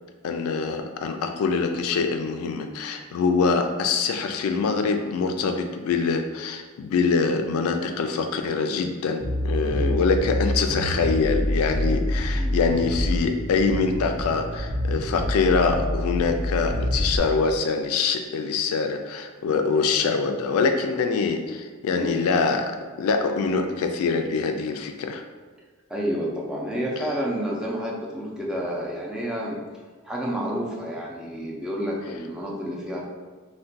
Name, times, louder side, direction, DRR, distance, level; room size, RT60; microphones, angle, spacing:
voice 1, 0.2-25.2, left 4 dB, 75° left, 6 dB, 0.3 m, -24 dB
sound 1, 9.2-17.2, left 1 dB, 80° right, 0.9 m, -27 dB
voice 2, 25.9-29.6 30.0-33.0, equal, 5° right, -4 dB, 0.4 m, -30 dB
2.4 x 2.1 x 3.9 m, 1.4 s
head